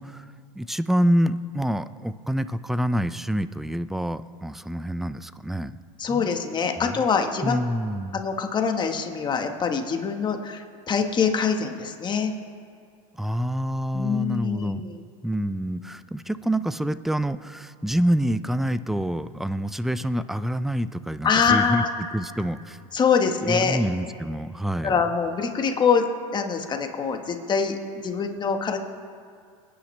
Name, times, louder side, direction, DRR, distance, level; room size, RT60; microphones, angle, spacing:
voice 1, 0.0-5.8 6.1-6.3 7.4-8.2 13.1-14.8 15.2-21.8 22.1-22.8 23.4-25.0, equal, ahead, 14 dB, 0.3 m, -27 dB
voice 2, 6.0-7.6 8.1-12.3 13.9-15.0 21.2-21.9 22.9-23.8 24.8-26.1 26.3-27.8 28.0-28.8, left 6 dB, 25° left, 5 dB, 1.3 m, -24 dB
26.5 x 10.0 x 3.3 m, 2.2 s
supercardioid pair, 120°, 18 cm